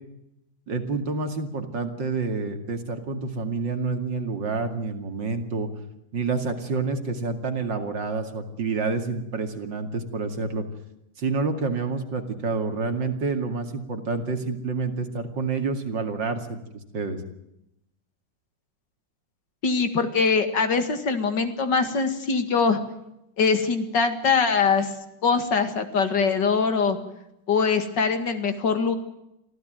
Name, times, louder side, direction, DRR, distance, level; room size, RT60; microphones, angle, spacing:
voice 1, 0.7-5.7 6.1-10.6 11.2-16.6 16.9-17.2, right 4 dB, 75° right, 6 dB, 3.0 m, -28 dB
voice 2, 19.6-22.8 23.4-24.9 25.2-27.0 27.5-29.0, left 5 dB, 65° left, 8 dB, 2.7 m, -22 dB
24.5 x 15.0 x 9.1 m, 0.85 s
omnidirectional pair, 2.0 m